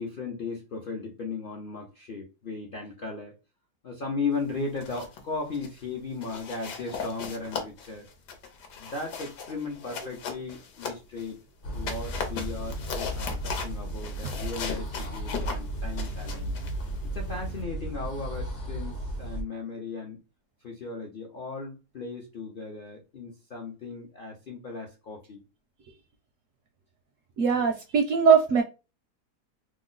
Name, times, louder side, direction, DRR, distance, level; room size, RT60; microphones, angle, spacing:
voice 1, 0.0-3.3 3.8-8.1 8.8-11.4 11.7-16.5 17.1-20.2 20.6-25.4, left 4 dB, 60° left, 0.5 m, -36 dB
sound 1, 4.6-5.2 5.5-5.8 6.2-11.3 11.7-17.6, left 5 dB, 85° left, 1.3 m, -38 dB
sound 2, 11.6-19.4, right 1 dB, 45° left, 0.9 m, -34 dB
voice 2, 27.4-28.6, right 6 dB, 70° right, 0.8 m, -21 dB
3.0 x 2.0 x 3.7 m
omnidirectional pair, 1.7 m